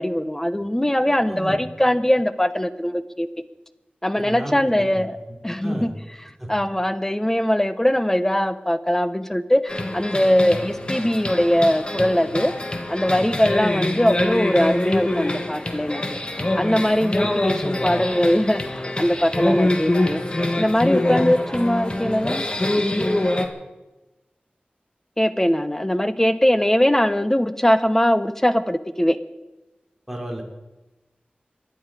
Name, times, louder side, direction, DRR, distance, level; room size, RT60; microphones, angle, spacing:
voice 1, 0.0-3.3 4.0-5.2 5.4-5.9 6.5-12.5 12.9-16.2 16.5-20.2 20.6-22.5 22.8-23.3 25.2-29.2, equal, 15° left, 11 dB, 1.0 m, -21 dB
voice 2, 1.3-1.6 4.2-4.6 4.9-5.0 5.6-5.9 6.4-6.5 13.1-13.4 17.2-17.3 19.4-19.6 21.1-21.2 30.1-30.4, right 1 dB, 5° right, -1 dB, 3.8 m, -32 dB
sound 1, 9.7-23.5, left 1 dB, 30° left, 1.6 m, -25 dB
25.0 x 10.5 x 5.0 m, 1.1 s
wide cardioid pair, 75°, 3 cm